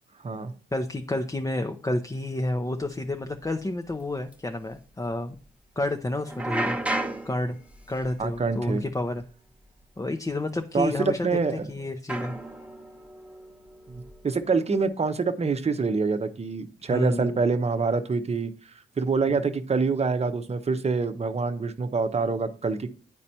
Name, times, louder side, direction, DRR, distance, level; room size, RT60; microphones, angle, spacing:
voice 1, 0.7-5.3 5.8-6.8 7.2-7.6 7.9-9.2 10.0-12.3 16.9-17.3 19.3-19.4, left 1 dB, 15° left, 5 dB, 0.7 m, -30 dB
sound 1, 3.4-3.6 3.9-4.0 4.3-4.4 6.2-9.3 9.5-9.8 10.8-10.9 12.1-14.5, right 1 dB, 5° right, 0.9 m, -34 dB
voice 2, 8.2-8.8 10.7-11.7 13.9-18.5 19.0-22.9, right 4 dB, 35° right, 9 dB, 0.8 m, -26 dB
9.9 x 4.2 x 2.8 m, 0.42 s
supercardioid pair, 50°, 20 cm